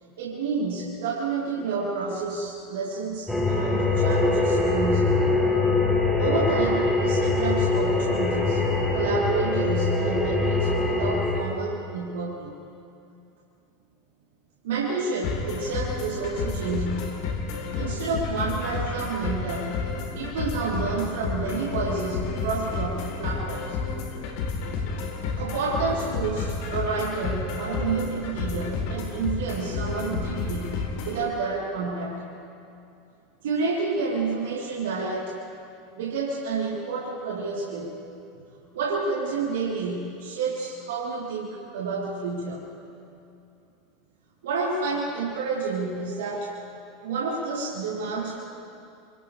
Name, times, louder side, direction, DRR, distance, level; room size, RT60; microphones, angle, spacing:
voice 1, 0.2-5.3 6.2-8.6 8.9-12.5 14.6-17.2 17.8-19.8 20.1-23.8 25.4-30.8 31.0-32.2 33.4-35.4 36.0-38.1 38.7-42.7 44.4-46.5 47.0-48.4, right 4 dB, 75° right, -6 dB, 3.8 m, -29 dB
sound 1, 3.3-11.4, left 3 dB, 5° left, 5.6 m, -23 dB
sound 2, 15.2-31.2, left 4 dB, 60° left, 3.7 m, -31 dB
28.0 x 27.0 x 3.5 m, 2.6 s
hypercardioid pair, 90°, 0 cm